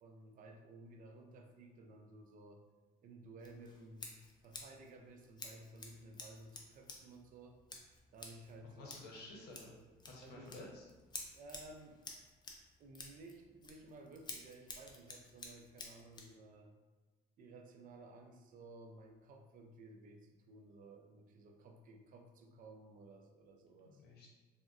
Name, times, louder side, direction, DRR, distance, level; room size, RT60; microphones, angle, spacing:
voice 1, 0.0-2.7 3.0-4.1 4.4-7.6 8.1-9.0 10.2-10.6 11.3-12.1 12.8-16.7 17.4-24.0, right 2 dB, 55° right, 3 dB, 0.4 m, -56 dB
Scissors, 3.4-16.4, left 3 dB, 25° left, 0.5 m, -53 dB
voice 2, 8.7-9.7 10.1-10.9 23.7-24.3, left 2 dB, 70° left, -2 dB, 0.8 m, -52 dB
3.4 x 2.1 x 2.4 m, 1.3 s
cardioid pair, 110°, 17 cm